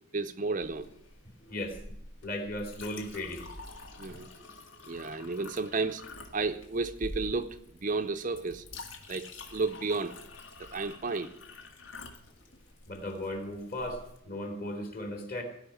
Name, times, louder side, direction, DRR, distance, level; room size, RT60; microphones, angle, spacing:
voice 1, 0.1-0.9 4.0-4.3 4.8-6.0 6.3-8.6 9.1-10.2 10.6-11.3, right 3 dB, 40° right, 9 dB, 0.6 m, -32 dB
Chink clink, 0.6-14.2, left 2 dB, 65° left, 1.9 m, -47 dB
voice 2, 2.2-3.5 12.9-15.4, left 1 dB, 45° left, 4 dB, 2.9 m, -36 dB
17.0 x 5.8 x 10.0 m, 0.75 s
head